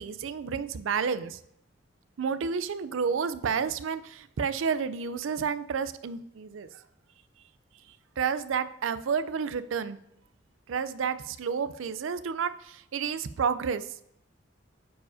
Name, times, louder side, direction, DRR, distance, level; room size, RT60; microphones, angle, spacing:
voice 1, 0.0-1.4 2.2-6.7 8.2-10.0 10.7-13.9, right 6 dB, 90° right, 14 dB, 0.4 m, -30 dB
9.1 x 4.7 x 2.6 m, 0.75 s
head